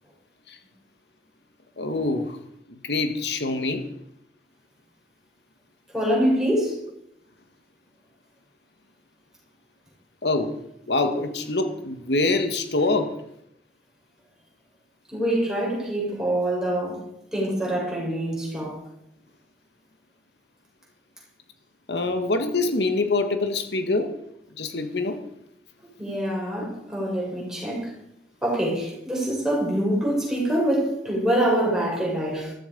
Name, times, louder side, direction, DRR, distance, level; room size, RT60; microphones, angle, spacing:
voice 1, 1.8-2.4 2.7-3.8 10.2-10.6 10.9-13.2 21.9-24.1 24.6-25.2, left 2 dB, 80° left, 1.8 m, -25 dB
voice 2, 5.9-6.8 15.1-18.8 26.0-27.9 28.4-32.5, right 1 dB, 5° right, 6.6 m, -25 dB
15.0 x 15.0 x 5.4 m
head